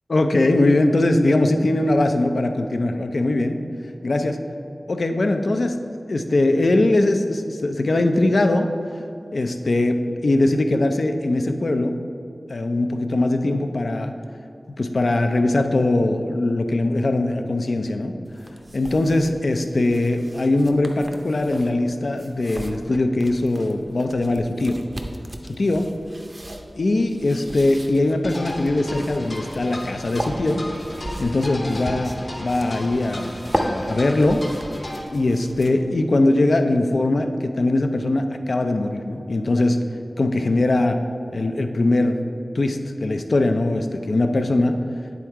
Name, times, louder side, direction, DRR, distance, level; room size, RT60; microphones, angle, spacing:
voice 1, 0.1-3.6 4.0-4.4 4.9-8.7 9.3-12.0 12.5-14.1 14.8-18.2 18.7-24.8 25.5-25.9 26.8-30.6 31.2-32.1 32.4-33.3 33.6-34.4 35.1-39.8 40.2-41.0 41.3-42.2 42.5-44.8, left 2 dB, 65° left, 6 dB, 0.5 m, -21 dB
sound 1, 18.2-36.0, right 1 dB, 30° right, 0.6 m, -36 dB
sound 2, 28.2-35.0, left 1 dB, 50° left, 1.0 m, -34 dB
9.3 x 3.6 x 4.6 m, 2.6 s
wide cardioid pair, 80°, 0 cm